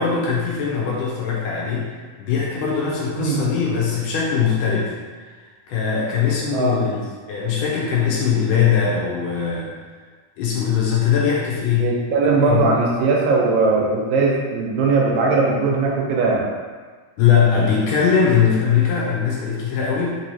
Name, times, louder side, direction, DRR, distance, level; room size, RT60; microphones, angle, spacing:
voice 1, 0.0-4.9 5.7-9.7 10.4-11.9 12.2-12.7 17.2-20.2, left 7 dB, 85° left, -4 dB, 2.2 m, -21 dB
voice 2, 11.8-16.4, right 3 dB, 90° right, -2 dB, 2.4 m, -19 dB
5.4 x 3.0 x 2.7 m, 1.4 s
omnidirectional pair, 3.8 m